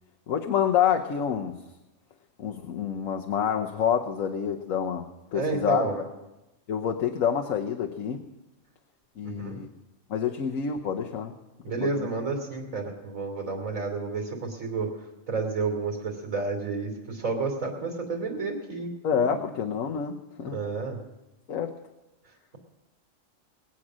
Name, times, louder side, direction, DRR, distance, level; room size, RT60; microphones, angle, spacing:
voice 1, 0.3-1.6 2.4-5.1 5.3-5.8 6.7-8.3 9.2-9.7 10.1-11.3 11.8-12.1 19.0-20.6 21.5-21.7, left 8 dB, 85° left, 2 dB, 1.3 m, -27 dB
voice 2, 5.3-6.0 9.2-9.6 11.6-14.9 15.3-18.9 20.4-21.0, right 4 dB, 85° right, 1 dB, 3.4 m, -30 dB
21.0 x 8.6 x 6.2 m, 0.98 s
omnidirectional pair, 1.4 m